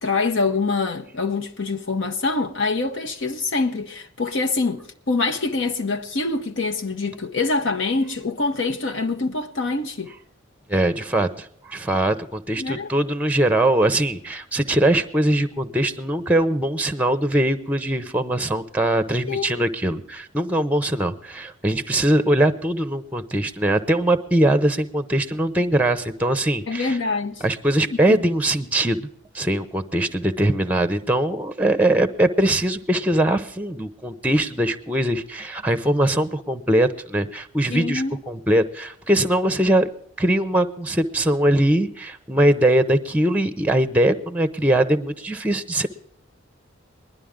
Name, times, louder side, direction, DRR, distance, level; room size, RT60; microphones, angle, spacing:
voice 1, 0.0-10.1 12.6-12.9 19.3-19.6 26.7-27.4 27.9-28.0 37.7-38.2, left 3 dB, 65° left, 0.9 m, -25 dB
voice 2, 10.7-27.0 27.4-29.1 29.3-39.9 40.2-45.9, right 1 dB, 10° right, 0.7 m, -21 dB
20.0 x 11.5 x 3.6 m
head